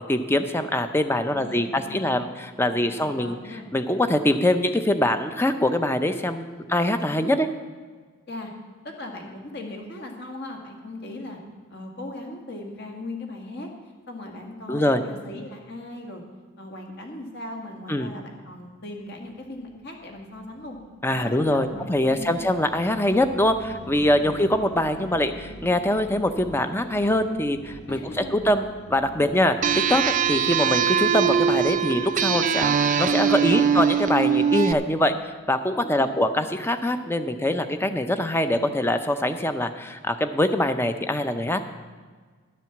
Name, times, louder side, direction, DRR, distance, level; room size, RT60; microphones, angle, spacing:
voice 1, 0.0-3.4 3.7-7.5 14.7-15.0 17.9-18.1 21.0-29.6 29.9-41.7, left 1 dB, 10° left, 9 dB, 0.5 m, -23 dB
voice 2, 1.3-2.3 2.7-3.7 6.5-6.6 7.1-7.5 8.3-8.5 8.8-11.4 11.7-13.7 14.1-16.2 16.6-20.8 21.1-22.4 27.9-28.4 29.1-29.5 33.3-33.7 35.8-36.2, left 2 dB, 50° left, 2 dB, 1.9 m, -39 dB
sound 1, 19.0-33.5, right 1 dB, 70° left, 4.1 m, -45 dB
sound 2, 29.6-34.7, right 7 dB, 35° right, 0.4 m, -22 dB
11.0 x 7.6 x 7.1 m, 1.5 s
head